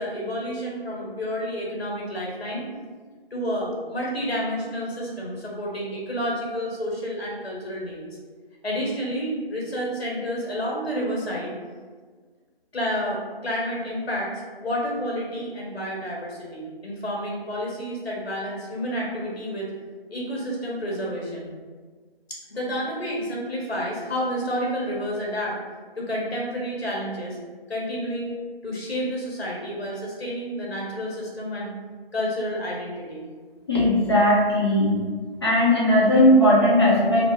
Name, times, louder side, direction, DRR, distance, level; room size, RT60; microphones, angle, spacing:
voice 1, 0.0-2.7 3.3-8.1 8.6-11.5 12.7-19.7 20.1-21.5 22.3-25.6 26.0-27.4 27.7-28.3 28.6-31.7 32.1-33.2, equal, 85° left, -3 dB, 1.1 m, -30 dB
voice 2, 33.7-35.0 35.4-37.3, left 1 dB, 25° left, -8 dB, 0.6 m, -18 dB
2.8 x 2.0 x 3.6 m, 1.5 s
figure-of-eight pair, 160°, 30 cm